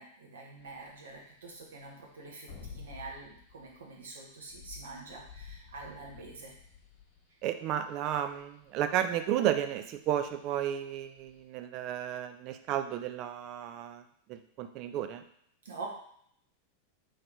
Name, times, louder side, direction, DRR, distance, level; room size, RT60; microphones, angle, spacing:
voice 1, 0.0-6.5 15.6-15.9, right 3 dB, 65° right, -1 dB, 0.9 m, -46 dB
sound 1, 0.6-11.4, left 6 dB, 50° left, 0.9 m, -52 dB
voice 2, 7.4-14.0 14.3-15.2, right 10 dB, 40° right, 9 dB, 0.3 m, -33 dB
3.1 x 2.9 x 3.5 m, 0.68 s
figure-of-eight pair, 90°, 0 cm